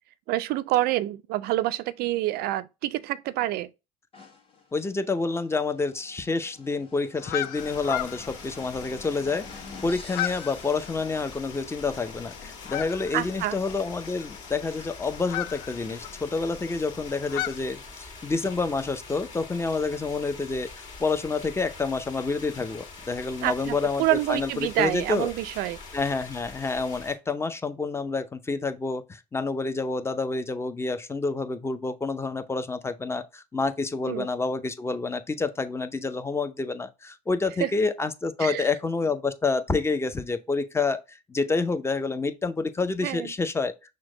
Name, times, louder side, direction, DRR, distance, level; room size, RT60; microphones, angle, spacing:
voice 1, 0.3-3.7 13.1-13.6 23.4-25.8 34.1-34.3 37.6-37.7 38.4-38.6 43.0-43.3, right 15 dB, 60° right, 0.4 m, -27 dB
sound 1, 4.1-11.7, left 3 dB, 30° left, 1.5 m, -49 dB
voice 2, 4.7-25.3 25.9-43.7, left 3 dB, 15° left, 0.6 m, -28 dB
sound 2, 7.1-17.6, left 13 dB, 70° left, 0.4 m, -37 dB
sound 3, 7.5-27.2, left 4 dB, 45° left, 1.8 m, -44 dB
6.1 x 2.1 x 3.7 m
hypercardioid pair, 70°, 18 cm